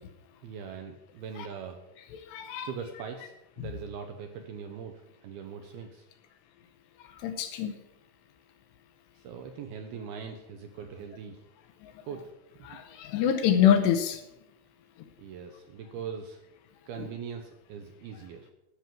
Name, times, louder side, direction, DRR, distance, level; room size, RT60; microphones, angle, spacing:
voice 1, 0.4-1.8 2.6-6.1 9.2-11.4 12.1-12.3 12.6-12.8 15.2-16.4 16.9-18.5, right 6 dB, 75° right, 5 dB, 2.4 m, -41 dB
voice 2, 2.3-2.7 7.2-7.7 11.8-11.9 12.6-14.2, left 9 dB, 75° left, 7 dB, 2.7 m, -25 dB
13.5 x 6.2 x 7.6 m, 0.88 s
omnidirectional pair, 5.4 m